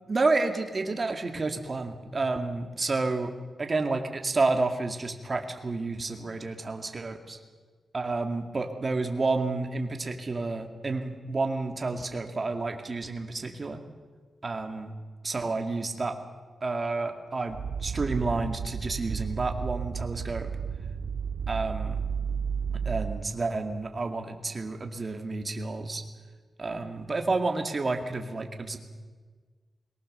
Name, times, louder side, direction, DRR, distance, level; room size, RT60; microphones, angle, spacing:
voice 1, 0.1-3.3 3.6-7.4 7.9-13.8 14.4-14.9 15.2-16.2 16.6-20.5 21.5-22.0 22.7-26.0 26.6-28.8, right 3 dB, 35° right, 5 dB, 2.1 m, -30 dB
sound 1, 17.5-23.3, right 6 dB, 85° right, 1.5 m, -32 dB
21.5 x 19.5 x 6.8 m, 1.5 s
wide cardioid pair, 100°, 0 cm